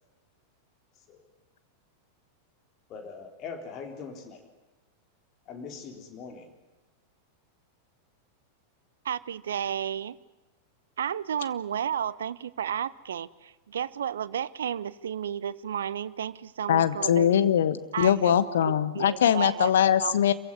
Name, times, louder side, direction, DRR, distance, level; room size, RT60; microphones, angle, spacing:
voice 1, 2.9-4.4 5.5-6.5, left 5 dB, 35° left, 4 dB, 3.7 m, -41 dB
voice 2, 9.0-10.2 11.0-17.3 17.9-18.3 18.7-19.7 20.0-20.2, right 9 dB, 65° right, 19 dB, 0.7 m, -32 dB
voice 3, 16.7-20.3, left 9 dB, 60° left, 13 dB, 1.3 m, -22 dB
27.5 x 16.0 x 9.7 m, 1.1 s
figure-of-eight pair, 90°, 0 cm